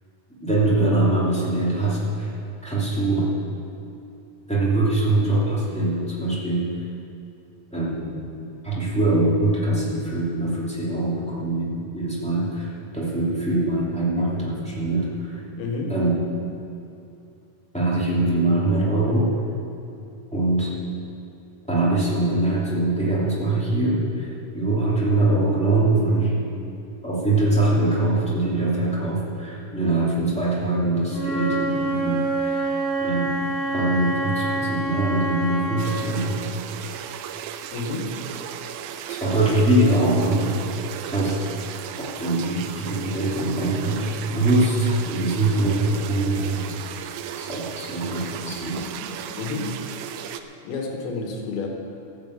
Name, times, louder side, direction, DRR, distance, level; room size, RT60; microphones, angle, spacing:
voice 1, 0.4-2.3 2.6-3.3 4.5-6.7 7.7-8.2 8.6-15.4 15.9-16.1 17.7-19.3 20.3-20.7 21.7-26.3 27.0-32.7 33.0-33.3 33.7-36.4 39.1-40.5 41.1-41.5 42.0-47.1 47.4-48.8, right 2 dB, ahead, -7 dB, 1.9 m, -23 dB
voice 2, 15.6-15.9 37.7-38.2 49.4-49.8 50.6-51.7, left 3 dB, 75° left, 1 dB, 3.3 m, -29 dB
Wind instrument woodwind instrument, 31.1-35.9, right 2 dB, 20° right, 4.2 m, -26 dB
sound 1, 35.8-50.4, right 9 dB, 80° right, 2.2 m, -35 dB
14.5 x 7.7 x 8.2 m, 2.7 s
omnidirectional pair, 4.4 m